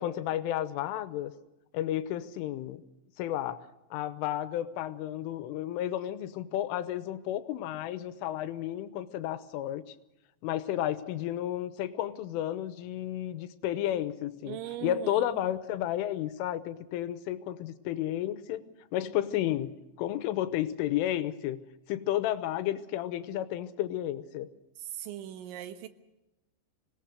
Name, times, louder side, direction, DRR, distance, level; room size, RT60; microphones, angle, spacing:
voice 1, 0.0-1.3 1.7-2.8 3.2-10.0 10.4-18.7 18.9-19.7 20.0-21.6 21.9-24.5, left 12 dB, 90° left, 12 dB, 3.5 m, -32 dB
voice 2, 14.4-15.4 24.8-25.9, right 12 dB, 75° right, 8 dB, 3.6 m, -39 dB
26.0 x 18.0 x 6.5 m, 0.96 s
omnidirectional pair, 5.5 m